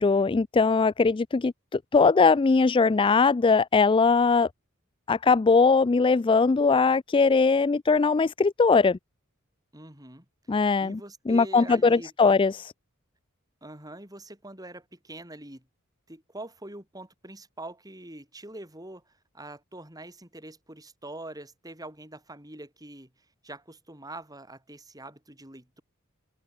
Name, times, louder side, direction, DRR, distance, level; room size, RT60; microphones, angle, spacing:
voice 1, 0.0-4.5 5.1-9.0 10.5-11.0 11.3-12.5, left 4 dB, 25° left, 0.3 m, -21 dB
voice 2, 9.7-10.3 10.5-12.4 13.6-15.7 16.1-25.8, right 1 dB, 15° right, 7.4 m, -44 dB
head